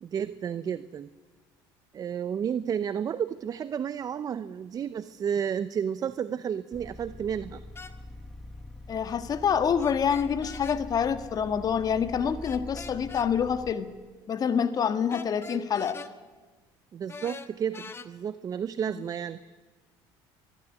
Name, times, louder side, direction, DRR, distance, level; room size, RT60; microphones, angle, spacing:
voice 1, 0.0-1.1 1.9-7.6 16.9-19.4, right 8 dB, 40° right, 14 dB, 0.7 m, -31 dB
sound 1, 6.7-13.7, left 1 dB, ahead, 1.5 m, -44 dB
sound 2, 7.7-7.9 9.8-10.8 12.4-13.3 15.1-16.1 17.1-18.1, left 4 dB, 25° left, 1.4 m, -43 dB
voice 2, 8.9-13.9 14.3-16.0, left 7 dB, 40° left, 11 dB, 1.6 m, -27 dB
24.0 x 12.0 x 10.0 m, 1.3 s
supercardioid pair, 100°, 10 cm